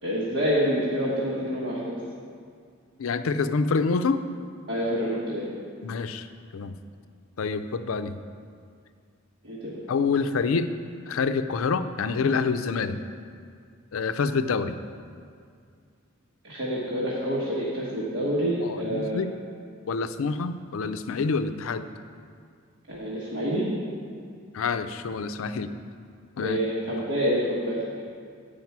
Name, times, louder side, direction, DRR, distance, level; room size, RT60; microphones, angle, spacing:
voice 1, 0.0-2.0 4.7-5.5 9.4-9.8 16.4-19.3 22.9-23.7 26.4-27.8, equal, 65° right, -6 dB, 1.3 m, -27 dB
voice 2, 3.0-4.3 5.8-6.3 6.5-6.7 7.4-8.2 9.9-10.7 11.1-13.0 13.9-14.7 18.6-19.3 19.9-21.9 24.5-25.7 26.4-26.6, left 4 dB, 90° left, 10 dB, 0.4 m, -27 dB
9.3 x 5.0 x 5.9 m, 2.2 s
head